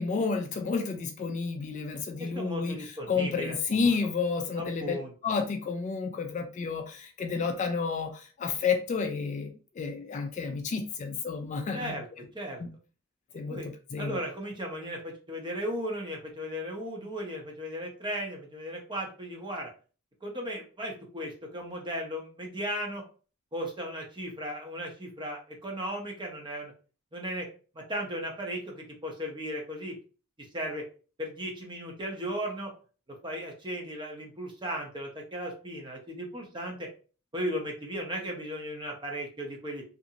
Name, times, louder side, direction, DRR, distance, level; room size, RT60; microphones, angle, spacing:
voice 1, 0.0-5.0 5.2-12.0 12.6-12.7 13.3-13.6 13.9-14.2, left 5 dB, 35° left, 5 dB, 0.3 m, -31 dB
voice 2, 2.2-3.6 3.8-4.0 4.6-5.1 11.7-12.1 12.3-12.6 13.5-13.7 14.0-19.7 20.2-23.0 23.5-26.7 27.1-27.5 27.7-30.0 30.5-30.8 31.2-32.7 33.1-36.9 37.3-39.8, equal, 20° right, 1 dB, 0.7 m, -36 dB
2.5 x 2.5 x 2.8 m, 0.37 s
head